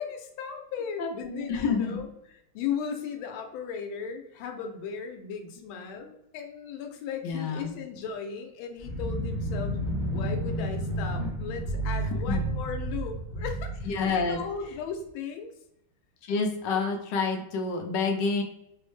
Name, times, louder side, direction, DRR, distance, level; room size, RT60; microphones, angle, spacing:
voice 1, 0.0-2.1 2.5-9.8 10.1-15.5, left 6 dB, 90° left, 4 dB, 1.4 m, -36 dB
voice 2, 1.0-2.0 7.2-7.7 12.2-12.5 13.8-14.4 16.2-18.4, left 4 dB, 70° left, 3 dB, 1.2 m, -28 dB
sound 1, 8.8-14.8, right 1 dB, ahead, 0.6 m, -31 dB
4.4 x 2.1 x 3.1 m, 0.81 s
omnidirectional pair, 2.2 m